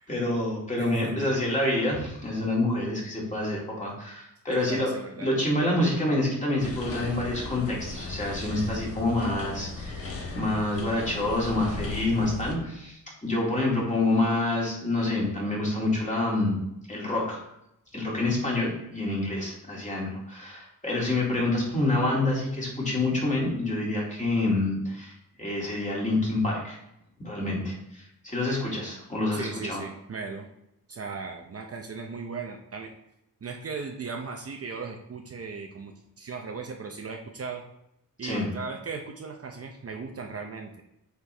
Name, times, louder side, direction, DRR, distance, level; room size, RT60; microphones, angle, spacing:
voice 1, 0.1-4.9 5.2-16.6 16.9-17.4 17.9-25.1 25.4-26.8 27.2-29.8 38.2-38.5, left 2 dB, 20° left, -4 dB, 2.4 m, -27 dB
voice 2, 0.8-1.4 4.5-5.3 29.3-30.5 30.9-32.9 33.4-37.6 38.2-40.8, right 4 dB, 45° right, 2 dB, 0.7 m, -37 dB
sound 1, 6.6-12.5, left 3 dB, 40° left, 1.1 m, -36 dB
8.3 x 4.5 x 3.3 m, 0.81 s
wide cardioid pair, 125°, 34 cm